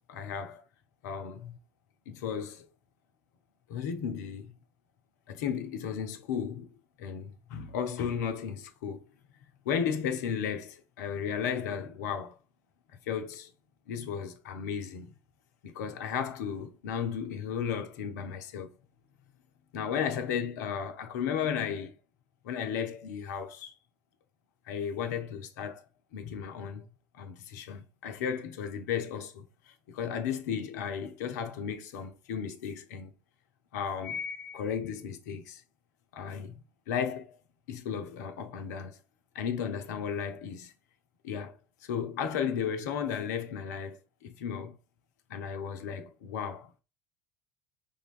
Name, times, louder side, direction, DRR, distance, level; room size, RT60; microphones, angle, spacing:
voice 1, 0.1-0.6 1.0-1.6 2.1-2.7 3.7-4.6 5.3-9.0 9.7-12.4 13.1-13.5 13.9-15.1 15.6-18.7 19.7-22.0 22.4-23.7 24.7-25.8 26.1-26.8 27.1-33.1 33.7-35.6 36.1-37.4 37.7-39.0 39.3-40.7 41.2-41.6 41.8-44.8 45.3-46.8, left 7 dB, 65° left, 0.4 m, -34 dB
2.6 x 2.2 x 2.3 m
figure-of-eight pair, 60°, 10 cm